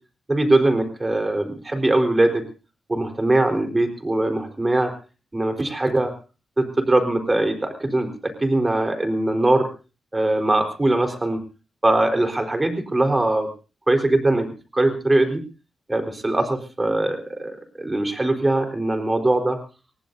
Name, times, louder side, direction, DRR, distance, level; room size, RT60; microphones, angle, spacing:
voice 1, 0.3-2.4 2.9-4.9 5.3-6.1 6.6-9.7 10.1-11.4 11.8-13.5 13.9-15.4 15.9-19.6, right 2 dB, 20° right, 5 dB, 4.0 m, -21 dB
25.5 x 18.5 x 2.7 m, 0.33 s
cardioid pair, 80°, 0 cm